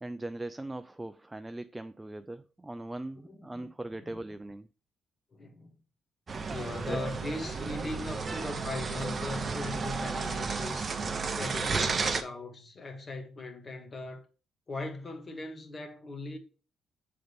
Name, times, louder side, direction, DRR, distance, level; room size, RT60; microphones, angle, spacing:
voice 1, 0.0-4.7 6.9-7.0, right 2 dB, 15° right, 0.3 m, -40 dB
voice 2, 3.3-3.7 4.1-4.2 5.3-5.7 6.5-10.9 11.3-14.2 14.7-16.4, left 2 dB, 35° left, 1.4 m, -39 dB
sound 1, 6.3-12.2, right 4 dB, 35° right, 0.8 m, -33 dB
7.8 x 3.9 x 3.5 m
cardioid pair, 90°, 0 cm